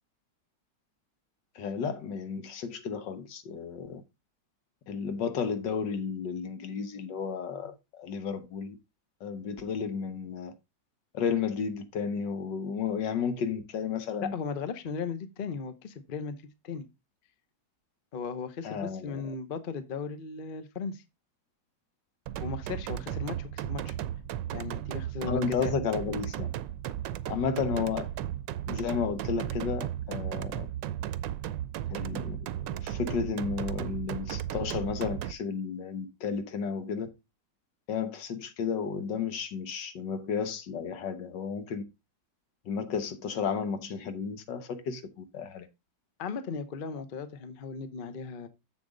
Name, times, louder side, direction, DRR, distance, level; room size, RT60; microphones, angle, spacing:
voice 1, 1.6-4.0 4.9-8.8 9.2-10.5 11.1-14.3 18.6-19.4 25.3-26.5 27.3-28.1 28.7-30.7 31.9-37.1 37.9-41.8 42.7-45.7, left 6 dB, 75° left, 1.7 m, -33 dB
voice 2, 14.2-16.4 16.6-16.9 18.1-21.0 22.4-24.0 24.5-25.7 46.2-48.5, left 5 dB, 40° left, 0.8 m, -37 dB
sound 1, 22.3-35.3, right 11 dB, 85° right, 1.3 m, -35 dB
7.2 x 7.2 x 3.8 m
omnidirectional pair, 1.9 m